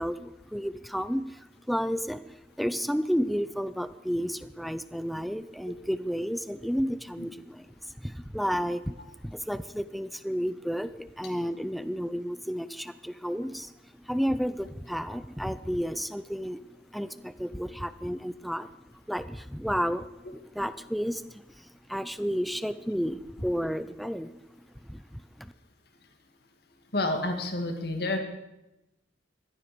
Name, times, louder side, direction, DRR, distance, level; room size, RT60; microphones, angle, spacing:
voice 1, 0.0-25.5, equal, ahead, 13 dB, 0.6 m, -32 dB
voice 2, 26.9-28.2, left 2 dB, 55° left, 5 dB, 2.1 m, -29 dB
15.5 x 13.0 x 7.0 m, 0.95 s
head